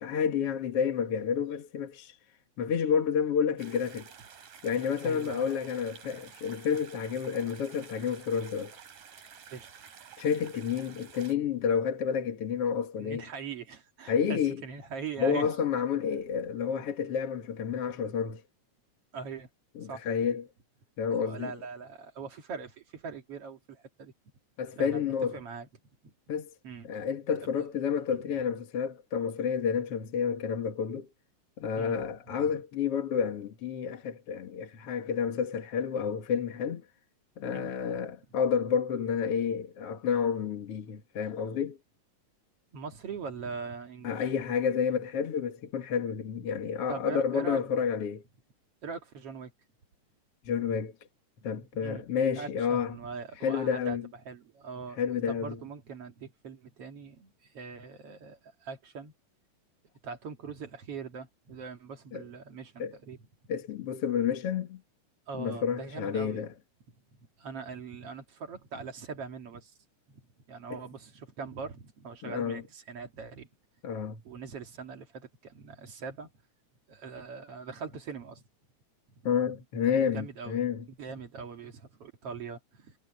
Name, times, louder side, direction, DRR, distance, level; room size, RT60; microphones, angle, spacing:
voice 1, 0.0-2.2 2.6-4.1 4.6-8.7 10.2-13.2 14.1-14.6 15.2-18.4 19.8-20.4 21.0-21.5 24.6-25.4 26.3-26.5 26.8-31.1 31.6-36.8 37.4-41.8 44.0-48.2 50.5-50.9 51.4-52.9 53.4-54.1 55.0-55.6 62.1-62.2 62.8-62.9 63.5-64.8 65.4-66.5 70.7-70.8 72.2-72.6 73.8-74.2 79.2-80.8, left 7 dB, 50° left, 2.5 m, -30 dB
sound 1, 3.6-11.4, right 7 dB, 80° right, 4.3 m, -51 dB
voice 2, 5.0-5.5 9.5-9.7 13.0-15.6 19.1-19.5 19.8-20.1 21.2-24.1 24.8-25.7 26.0-26.1 26.6-27.0 27.4-27.5 31.8-32.0 32.4-32.5 37.5-37.8 42.7-44.2 46.9-47.6 48.8-49.5 51.7-52.0 52.4-54.0 54.3-55.0 55.3-59.1 60.0-63.2 65.3-66.4 67.4-69.7 70.1-70.2 70.5-73.5 74.2-76.3 76.9-78.4 80.0-80.6 81.0-82.9, right 5 dB, 50° right, 2.5 m, -41 dB
omnidirectional pair, 3.7 m